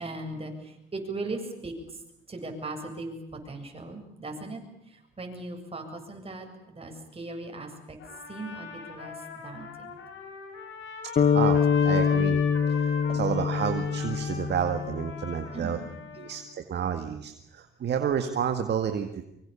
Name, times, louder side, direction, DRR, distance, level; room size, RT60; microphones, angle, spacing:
voice 1, 0.0-1.7 2.3-3.2 3.5-4.6 5.2-8.0 8.3-9.2 9.4-9.9 13.1-13.2 15.5-15.8, right 2 dB, 30° right, 3 dB, 7.8 m, -38 dB
Trumpet, 8.0-16.5, left 5 dB, 75° left, 6.7 m, -40 dB
sound 1, 11.2-15.4, left 6 dB, 40° left, 0.9 m, -25 dB
voice 2, 11.3-12.4 12.7-15.8 16.2-19.2, right 8 dB, 60° right, 7 dB, 2.0 m, -30 dB
24.5 x 24.5 x 7.2 m, 0.81 s
cardioid pair, 90°, 20 cm